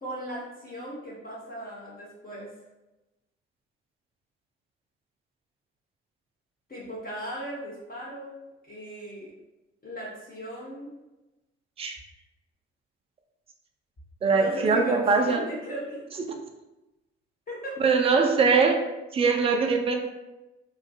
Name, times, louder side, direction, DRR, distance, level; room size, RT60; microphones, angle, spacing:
voice 1, 0.0-2.5 6.7-8.3 8.6-9.3 9.8-10.9 14.3-16.0 17.5-17.8, equal, 25° left, -7 dB, 0.8 m, -37 dB
voice 2, 14.2-15.4 17.8-18.8 19.1-20.0, right 4 dB, 20° right, 3 dB, 0.3 m, -22 dB
2.4 x 2.3 x 2.3 m, 1.0 s
figure-of-eight pair, 40°, 34 cm